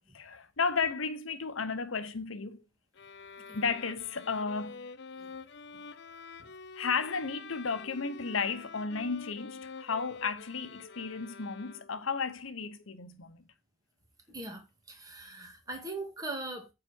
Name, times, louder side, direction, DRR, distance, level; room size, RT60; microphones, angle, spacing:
voice 1, 0.1-2.6 3.5-4.8 6.4-13.4, left 5 dB, 85° left, 0.9 m, -34 dB
sound 1, 2.9-12.2, left 4 dB, 55° left, 0.5 m, -47 dB
voice 2, 14.3-16.7, right 2 dB, 20° right, 1.9 m, -41 dB
9.0 x 4.1 x 6.2 m
head